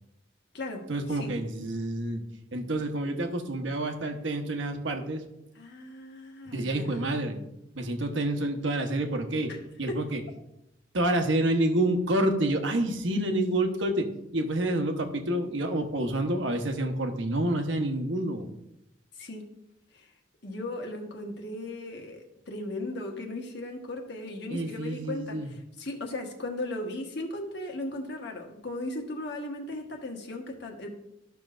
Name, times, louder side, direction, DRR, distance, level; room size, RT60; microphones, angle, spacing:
voice 1, 0.9-2.2 2.5-5.3 6.5-7.4 7.7-9.5 9.8-10.2 10.9-14.1 14.3-18.5 24.5-25.5, right 1 dB, 70° right, 5 dB, 1.0 m, -28 dB
voice 2, 5.5-7.4 9.5-9.6 9.9-10.0 19.1-19.4 19.9-20.1 20.4-30.9, left 1 dB, 60° left, 2 dB, 1.3 m, -37 dB
13.0 x 6.0 x 2.5 m, 0.87 s
head